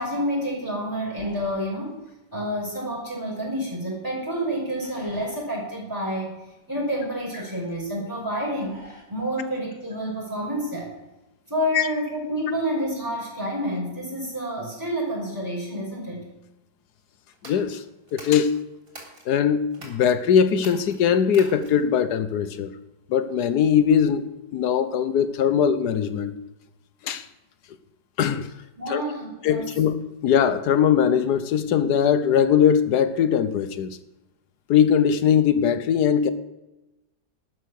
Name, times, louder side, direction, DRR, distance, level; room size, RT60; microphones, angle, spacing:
voice 1, 0.0-1.9 2.3-6.3 6.7-10.9 11.5-16.3 28.8-29.7, equal, 10° right, 5.5 m, -29 dB
sound 1, 17.3-19.3 19.7-20.1 20.5-21.9, right 2 dB, 50° right, 3.9 m, -44 dB
voice 2, 17.4-17.8 18.1-18.5 19.3-22.7 23.1-26.3 27.0-27.3 28.2-28.5 28.9-29.0 29.4-34.0 34.7-36.3, left 8 dB, 70° left, 1.4 m, -21 dB
12.5 x 9.2 x 6.4 m
omnidirectional pair, 1.8 m